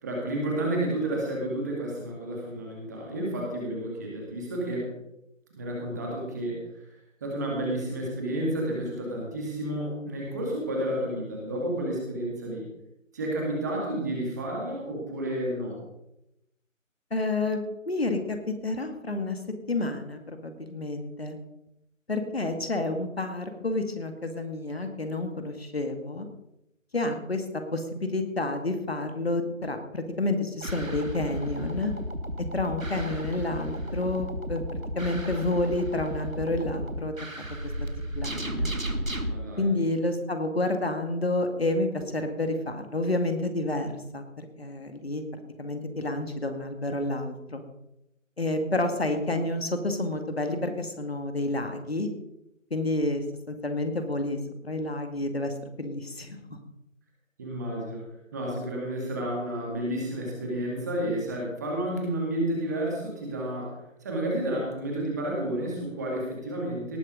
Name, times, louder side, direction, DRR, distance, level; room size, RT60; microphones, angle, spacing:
voice 1, 0.0-4.9 5.6-12.7 13.1-15.8 39.3-39.7 57.4-58.0 58.3-67.0, right 1 dB, 15° right, -2 dB, 2.3 m, -31 dB
voice 2, 17.1-18.4 18.6-19.4 19.7-21.4 22.1-26.3 26.9-27.5 27.7-31.9 32.5-34.6 35.0-37.1 37.8-37.9 38.2-38.7 39.6-45.2 45.6-47.6 48.4-52.1 52.7-54.4 54.6-56.4, left 2 dB, 50° left, 6 dB, 2.1 m, -29 dB
sound 1, 30.6-39.3, equal, 80° right, 2.2 m, -33 dB
18.5 x 8.3 x 5.3 m, 0.85 s
figure-of-eight pair, 160°, 39 cm